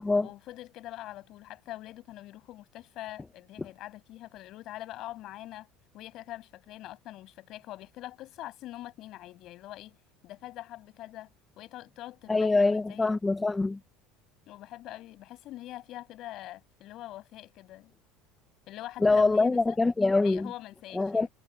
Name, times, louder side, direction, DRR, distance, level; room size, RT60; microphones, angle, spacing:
voice 1, 0.2-5.7 5.9-10.0 10.2-11.3 11.6-13.1 14.5-17.9 18.7-19.8 20.2-21.3, left 15 dB, 45° left, 7.6 m, -44 dB
voice 2, 12.3-13.8 19.0-20.5 20.9-21.3, left 3 dB, 10° left, 0.9 m, -24 dB
cardioid pair, 155°, 0 cm